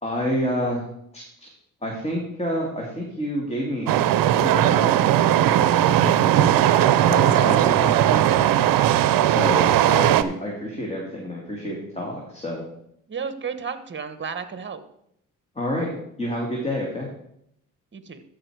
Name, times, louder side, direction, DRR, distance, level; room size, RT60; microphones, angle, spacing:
voice 1, 0.0-0.8 1.1-1.5 1.8-3.9 4.4-5.5 5.9-6.6 7.1-8.6 9.2-12.6 15.6-15.9 16.2-17.1, equal, 20° left, -1 dB, 2.2 m, -29 dB
sound 1, 3.9-10.2, right 12 dB, 75° right, 0.6 m, -18 dB
voice 2, 13.1-14.8 17.9-18.2, right 6 dB, 35° right, 11 dB, 1.1 m, -32 dB
12.5 x 5.1 x 4.7 m, 0.74 s
cardioid pair, 75°, 34 cm